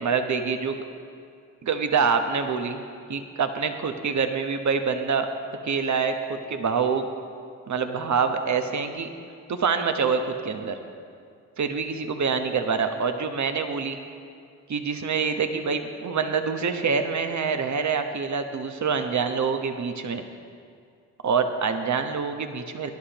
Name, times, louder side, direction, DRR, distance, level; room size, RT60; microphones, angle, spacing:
voice 1, 0.0-0.8 1.6-2.8 3.1-5.3 5.6-7.0 7.7-9.1 9.5-10.8 11.6-14.0 14.7-20.2 21.2-22.9, right 5 dB, 45° right, 7 dB, 1.1 m, -26 dB
18.5 x 11.5 x 3.0 m, 2.3 s
hypercardioid pair, 45°, 40 cm